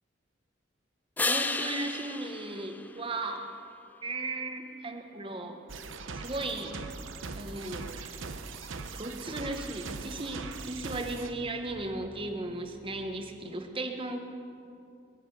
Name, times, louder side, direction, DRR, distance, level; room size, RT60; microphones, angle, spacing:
sound 1, 1.2-3.7 9.5-13.5, left 3 dB, 10° left, 0.4 m, -37 dB
voice 1, 1.2-3.5 4.0-5.6 6.1-6.8 7.4-8.2 8.9-14.2, right 2 dB, 25° right, 5 dB, 1.0 m, -36 dB
sound 2, 5.7-11.3, right 4 dB, 80° right, 0.9 m, -40 dB
21.5 x 8.5 x 6.9 m, 2.5 s
head